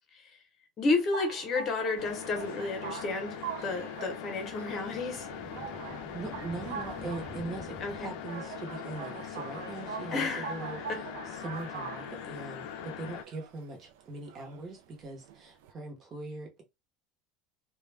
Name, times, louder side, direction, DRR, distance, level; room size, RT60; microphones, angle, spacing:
voice 1, 0.8-3.4 3.6-5.3 7.8-8.2 10.1-11.0, left 3 dB, 30° left, 0.9 m, -31 dB
sound 1, 0.9-15.7, right 7 dB, 85° right, 0.4 m, -44 dB
sound 2, 2.0-13.2, left 9 dB, 65° left, 0.5 m, -42 dB
sound 3, 4.8-8.6, equal, 5° left, 0.6 m, -47 dB
voice 2, 6.1-10.8 11.3-16.6, right 2 dB, 30° right, 1.0 m, -41 dB
2.3 x 2.3 x 3.3 m
cardioid pair, 155°, 0 cm